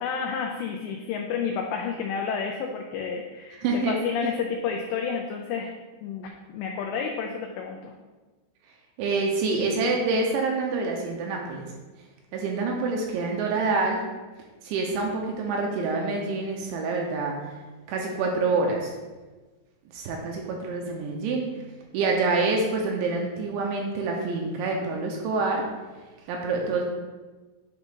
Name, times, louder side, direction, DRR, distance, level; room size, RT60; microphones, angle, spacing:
voice 1, 0.0-5.7 6.0-7.9, left 6 dB, 90° left, 2 dB, 2.5 m, -30 dB
voice 2, 3.6-3.9 4.2-4.3 9.0-11.7 12.3-14.0 14.6-17.5 17.9-18.9 19.9-21.5 21.9-25.6 26.3-26.8, right 3 dB, 80° right, 0 dB, 2.8 m, -26 dB
10.0 x 5.2 x 2.4 m, 1.2 s
omnidirectional pair, 5.6 m